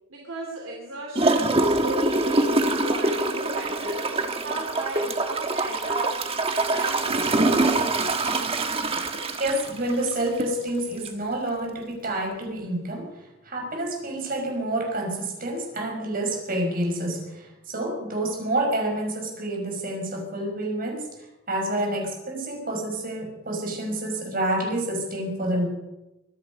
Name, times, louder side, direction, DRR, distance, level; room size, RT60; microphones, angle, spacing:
voice 1, 0.1-6.2 6.7-8.2, right 2 dB, 80° right, -1 dB, 3.1 m, -36 dB
Gurgling / Toilet flush, 1.1-10.6 11.0-11.1, right 2 dB, 30° right, 1.4 m, -24 dB
voice 2, 9.4-21.1 21.5-25.7, right 1 dB, 45° right, 1 dB, 5.7 m, -28 dB
24.0 x 11.0 x 5.4 m, 0.96 s
head